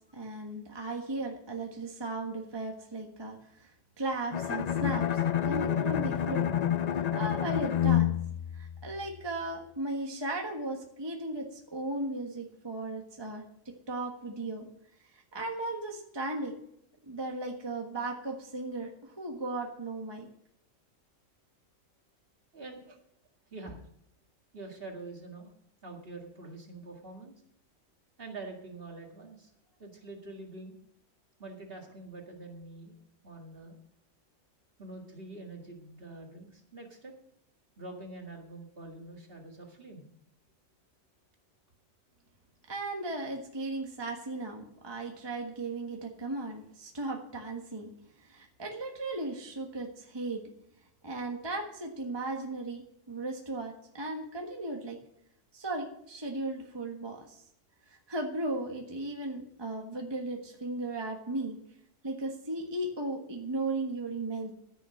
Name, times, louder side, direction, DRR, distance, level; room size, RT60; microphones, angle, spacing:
voice 1, 0.1-3.7 4.0-6.5 6.9-8.1 8.5-14.7 15.1-16.6 17.1-20.3 42.7-47.9 48.2-50.4 51.0-55.0 55.5-57.4 57.9-61.6 62.0-64.5, right 2 dB, 20° right, 1 dB, 1.4 m, -36 dB
Bowed string instrument, 4.3-9.3, left 9 dB, 75° left, 0.3 m, -29 dB
voice 2, 22.5-22.9 23.5-23.8 24.5-25.5 25.8-27.3 28.2-29.5 29.8-30.7 31.4-32.9 33.2-33.8 34.8-37.1 37.8-40.1, right 2 dB, 45° right, 1 dB, 2.2 m, -45 dB
14.5 x 6.8 x 6.4 m, 0.73 s
omnidirectional pair, 1.4 m